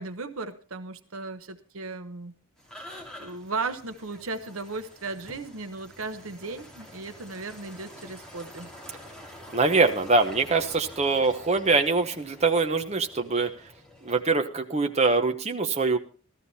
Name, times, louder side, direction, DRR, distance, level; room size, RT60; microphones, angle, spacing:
voice 1, 0.0-2.3 3.2-8.7, right 3 dB, 70° right, 10 dB, 1.1 m, -36 dB
sound 1, 2.6-14.2, left 1 dB, 5° left, 2.9 m, -47 dB
voice 2, 9.5-13.5 14.0-16.0, right 3 dB, 30° right, 5 dB, 1.0 m, -23 dB
14.5 x 14.0 x 4.2 m, 0.38 s
head